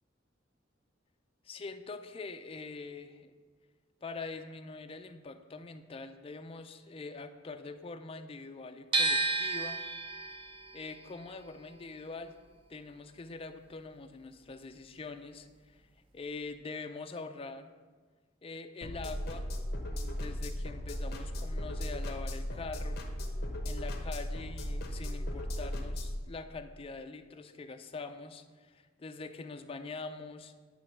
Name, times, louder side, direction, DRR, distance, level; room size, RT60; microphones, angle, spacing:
voice 1, 1.4-3.3 4.0-9.8 10.7-12.3 12.7-15.8 16.1-17.7 18.4-19.5 19.9-23.0 23.6-30.5, left 3 dB, 30° left, 8 dB, 0.4 m, -44 dB
sound 1, 8.9-15.0 15.2-16.5, right 3 dB, 25° right, 0.7 m, -35 dB
sound 2, 18.8-26.2, equal, 55° left, 1.0 m, -36 dB
9.7 x 3.2 x 6.1 m, 1.5 s
head